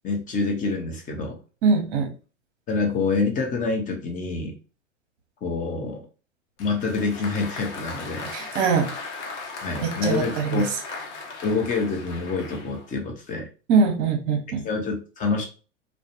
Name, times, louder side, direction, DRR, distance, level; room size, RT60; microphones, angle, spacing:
voice 1, 0.0-1.4 2.7-4.6 5.4-6.0 6.6-8.3 9.6-10.7 11.4-13.5 14.6-15.4, left 4 dB, 20° left, 2 dB, 0.7 m, -26 dB
voice 2, 1.6-2.1 8.3-8.9 9.8-10.6 13.7-14.7, right 5 dB, 40° right, 5 dB, 0.8 m, -22 dB
Applause, 6.6-12.9, left 3 dB, 65° left, 0.8 m, -37 dB
2.3 x 2.1 x 2.8 m, 0.35 s
hypercardioid pair, 105°, 38 cm